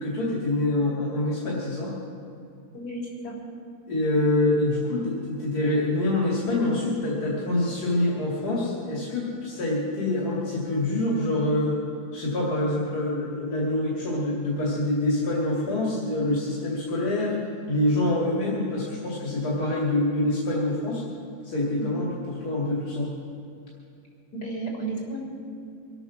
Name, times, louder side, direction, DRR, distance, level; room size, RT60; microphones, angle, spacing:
voice 1, 0.0-2.0 3.9-11.8 12.1-17.4 17.7-21.0 21.4-23.1, left 1 dB, 75° left, -5 dB, 3.0 m, -26 dB
voice 2, 2.7-3.4 21.8-21.9 24.3-25.2, right 2 dB, 90° left, -1 dB, 4.2 m, -33 dB
24.0 x 9.0 x 6.3 m, 2.5 s
omnidirectional pair, 1.7 m